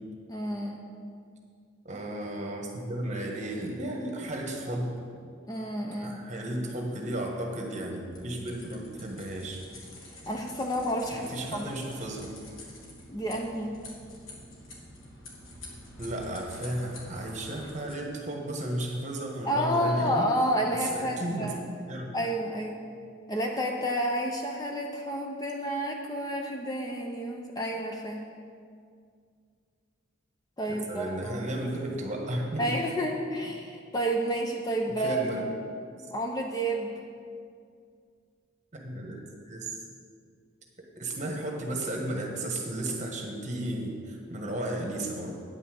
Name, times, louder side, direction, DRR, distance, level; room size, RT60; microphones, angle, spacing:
voice 1, 0.3-0.8 5.5-6.2 10.1-11.7 13.1-13.8 19.4-21.6 22.1-22.8 23.3-28.2 30.6-31.5 32.6-35.2 36.1-36.9, equal, 20° left, 1 dB, 0.6 m, -30 dB
voice 2, 1.8-4.9 6.0-9.6 11.1-12.3 16.0-20.3 20.8-21.5 21.9-22.1 30.7-32.8 35.0-35.4 36.0-36.1 38.7-39.7 40.8-45.4, right 1 dB, 35° right, 1 dB, 1.3 m, -34 dB
sound 1, 8.1-17.9, left 1 dB, 85° left, 2.0 m, -47 dB
9.1 x 5.5 x 7.8 m, 2.2 s
head